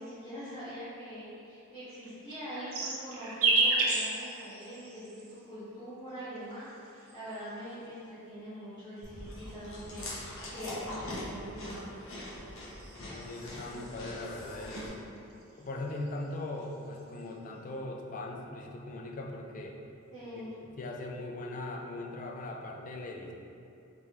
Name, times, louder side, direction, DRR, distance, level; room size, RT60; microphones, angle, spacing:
voice 1, 0.0-12.2 20.1-20.5, equal, 20° left, -14 dB, 0.9 m, -43 dB
sound 1, 2.0-5.4 6.4-7.7 8.6-10.4 11.8-14.0 14.4-14.9 15.2-16.3 16.6-17.2, right 3 dB, 75° right, 0.6 m, -33 dB
Chewing mastication, 9.0-14.9, left 1 dB, 65° left, 0.8 m, -42 dB
voice 2, 13.0-15.0 15.6-19.8 20.3-23.3, left 2 dB, 40° left, 1 dB, 0.4 m, -40 dB
3.5 x 3.3 x 2.8 m, 2.6 s
head